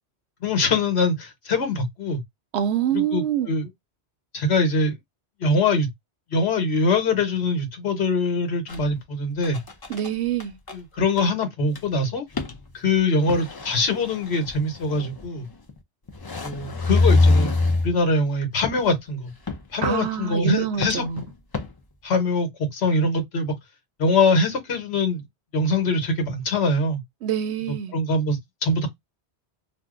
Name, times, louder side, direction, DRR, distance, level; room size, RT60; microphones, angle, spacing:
voice 1, 0.4-2.2 2.9-3.7 4.3-5.0 5.4-5.9 6.3-9.6 10.7-12.2 12.7-15.5 16.4-19.3 19.7-21.0 22.0-23.6 24.0-25.2 25.5-27.0 27.7-28.9, left 2 dB, 70° left, 1.3 m, -23 dB
voice 2, 2.5-3.5 9.9-10.5 19.8-21.3 27.2-27.9, right 9 dB, 75° right, 0.9 m, -25 dB
sound 1, 8.7-8.9 9.4-10.1 10.4-10.5 10.7-10.8 11.2-11.3 11.7-11.8 12.3-12.6 13.3-15.2 15.7-15.8 16.1-17.9 18.6-18.9 19.5-20.0 20.8-21.7, left 3 dB, 35° left, 0.4 m, -23 dB
2.7 x 2.1 x 3.6 m
omnidirectional pair, 1.1 m